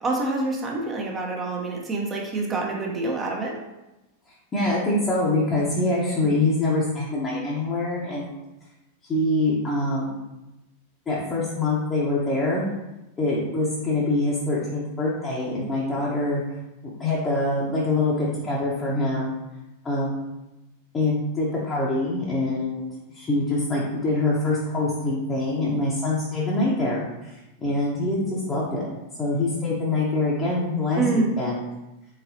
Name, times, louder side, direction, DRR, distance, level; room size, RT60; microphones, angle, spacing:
voice 1, 0.0-3.6 31.0-31.3, right 3 dB, 20° right, -1 dB, 0.8 m, -26 dB
voice 2, 4.5-8.3 9.0-10.1 11.1-12.7 13.2-16.4 17.0-19.3 19.8-20.1 20.9-22.9 23.1-28.8 29.2-31.6, left 2 dB, 20° left, -6 dB, 0.9 m, -24 dB
4.1 x 3.9 x 2.7 m, 0.98 s
figure-of-eight pair, 90°, 0 cm